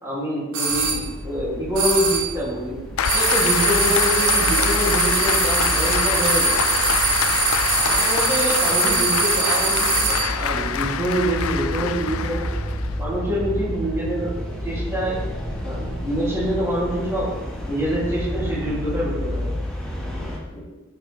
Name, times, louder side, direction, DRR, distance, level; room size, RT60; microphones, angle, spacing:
voice 1, 0.0-2.8 3.1-6.9 7.8-12.5 13.0-14.3 14.6-15.2 15.6-17.3 17.7-19.5 20.1-20.6, equal, 15° right, -8 dB, 3.0 m, -26 dB
sound 1, 0.5-1.0 1.8-2.4 3.0-10.4, right 4 dB, 85° right, 1.7 m, -22 dB
sound 2, 0.7-20.4, equal, 5° left, 1.8 m, -31 dB
Applause, 3.0-13.0, left 8 dB, 85° left, 0.5 m, -25 dB
10.0 x 7.7 x 3.5 m, 1.1 s
head